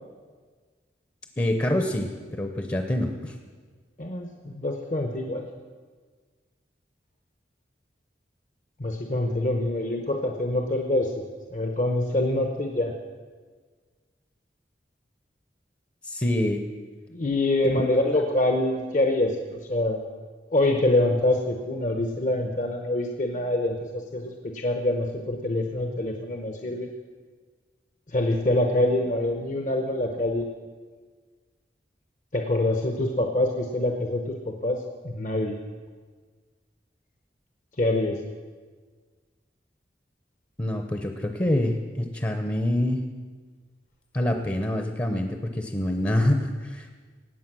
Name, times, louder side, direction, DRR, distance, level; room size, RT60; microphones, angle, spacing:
voice 1, 1.4-3.3 16.0-16.6 17.7-17.8 40.6-43.0 44.1-46.9, left 1 dB, 25° left, 5 dB, 0.8 m, -26 dB
voice 2, 4.0-5.5 8.8-11.2 11.5-12.9 17.1-20.1 20.5-26.9 28.1-30.5 32.3-35.6 37.8-38.2, left 1 dB, 45° left, 3 dB, 0.9 m, -25 dB
18.5 x 8.0 x 6.1 m, 1.5 s
head